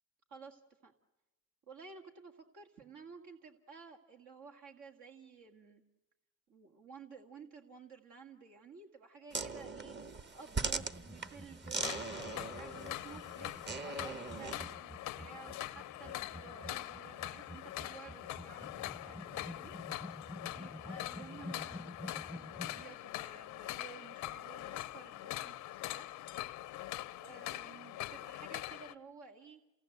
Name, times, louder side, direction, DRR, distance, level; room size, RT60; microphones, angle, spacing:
voice 1, 0.3-0.9 1.7-5.8 6.5-10.0 10.3-19.7 20.5-26.1 27.2-29.6, right 5 dB, 75° right, 2 dB, 2.2 m, -54 dB
sound 1, 9.3-14.7, right 4 dB, 35° right, 1.2 m, -40 dB
sound 2, 10.7-22.9, left 1 dB, 5° right, 0.7 m, -50 dB
sound 3, 11.8-28.9, left 15 dB, 90° left, 0.7 m, -43 dB
28.0 x 17.5 x 7.9 m, 0.98 s
cardioid pair, 90°, 30 cm